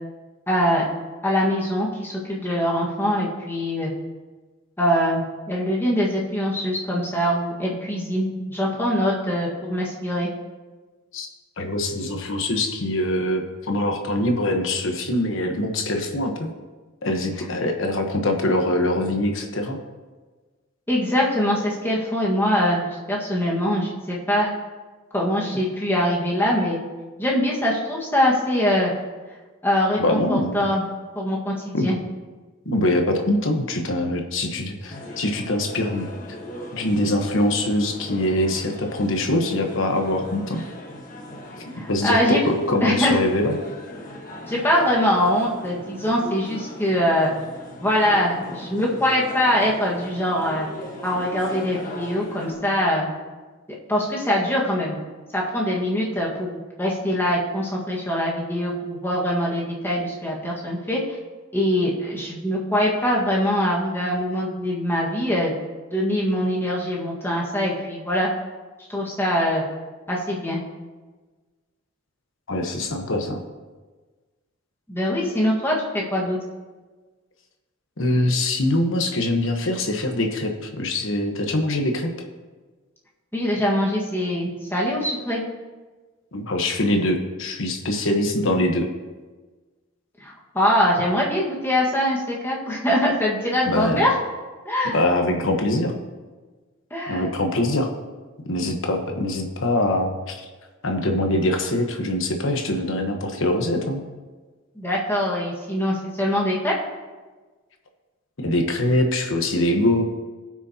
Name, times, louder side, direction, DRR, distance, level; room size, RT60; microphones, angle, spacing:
voice 1, 0.5-0.8 1.2-3.9 4.8-10.3 20.9-24.5 25.1-26.8 27.2-28.9 29.6-30.8 31.1-32.0 41.8-42.4 42.8-43.2 44.5-47.3 47.8-50.7 51.0-53.1 53.9-55.0 55.3-61.0 61.5-65.5 65.9-68.3 68.9-69.6 70.1-70.6 74.9-76.4 83.3-85.4 90.2-94.1 94.6-95.0 96.9-97.3 104.7-106.7, equal, 10° left, -4 dB, 1.6 m, -23 dB
voice 2, 11.6-16.5 17.0-19.8 30.0-30.6 31.7-31.9 32.6-36.4 36.7-40.6 41.9-43.6 72.5-73.4 78.0-82.1 86.3-88.9 93.7-94.1 94.9-96.0 97.1-97.9 98.4-100.5 100.8-104.0 108.4-110.0, left 1 dB, 60° left, 4 dB, 1.2 m, -23 dB
sound 1, 34.9-52.5, left 1 dB, 40° left, 1.4 m, -39 dB
18.5 x 6.2 x 2.9 m, 1.3 s
head